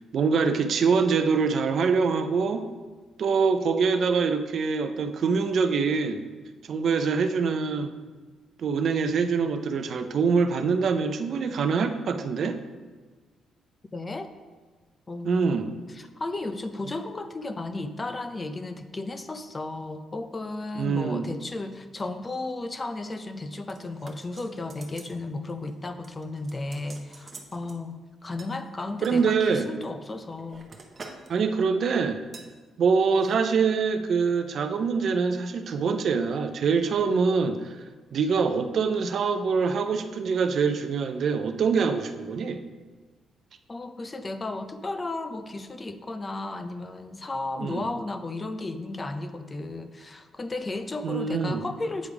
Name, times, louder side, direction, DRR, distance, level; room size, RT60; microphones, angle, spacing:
voice 1, 0.1-2.7 3.2-6.2 6.7-7.9 8.6-12.6 15.2-15.8 20.8-21.3 29.0-29.7 31.3-32.2 32.8-37.8 38.1-42.6 47.6-47.9 51.0-51.6, right 5 dB, 60° right, 8 dB, 0.5 m, -24 dB
voice 2, 13.9-14.3 15.1-15.6 15.9-30.7 43.7-52.1, left 2 dB, 25° left, 9 dB, 0.5 m, -34 dB
sound 1, 23.7-25.2 25.5-25.7 26.0-27.8 28.4-29.3 29.9-31.3 31.6-31.8 32.3-32.5 33.1-33.4 33.6-33.7, right 3 dB, 40° right, 0.8 m, -47 dB
8.3 x 3.5 x 4.7 m, 1.4 s
cardioid pair, 90°, 0 cm